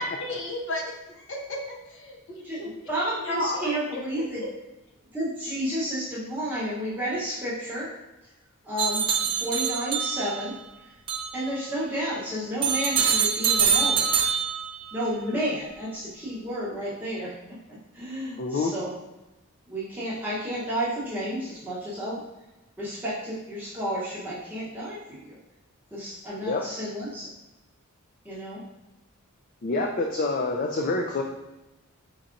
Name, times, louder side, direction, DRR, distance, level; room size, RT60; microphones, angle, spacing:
voice 1, 0.0-2.7 3.2-4.0, left 1 dB, 60° left, 0 dB, 0.9 m, -33 dB
voice 2, 2.9-4.4 5.1-7.9 8.6-10.5 11.3-14.1 14.9-17.6 17.9-18.9 19.7-22.2 22.8-25.4 25.9-27.3 28.2-28.6, equal, 10° right, -9 dB, 0.9 m, -31 dB
sound 1, 8.8-10.5 11.1-11.4 12.6-14.9, right 7 dB, 25° right, 0.5 m, -24 dB
voice 3, 18.4-18.7 26.4-26.6 29.6-31.2, left 3 dB, 40° left, 1 dB, 0.4 m, -26 dB
4.5 x 4.0 x 2.5 m, 1.0 s
head